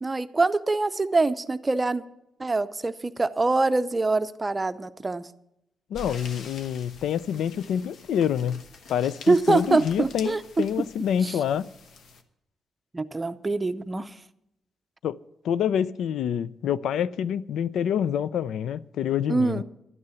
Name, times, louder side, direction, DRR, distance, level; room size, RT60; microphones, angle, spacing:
voice 1, 0.0-2.0 2.4-5.3 9.3-10.6 11.2-11.3 12.9-14.1 19.3-19.6, right 3 dB, 20° right, 0.5 m, -24 dB
voice 2, 5.9-8.6 8.9-11.7 15.0-15.2 15.4-19.6, left 9 dB, 90° left, 0.4 m, -27 dB
sound 1, 5.9-12.2, left 3 dB, 70° left, 1.2 m, -46 dB
12.0 x 9.5 x 7.0 m
cardioid pair, 135°, 0 cm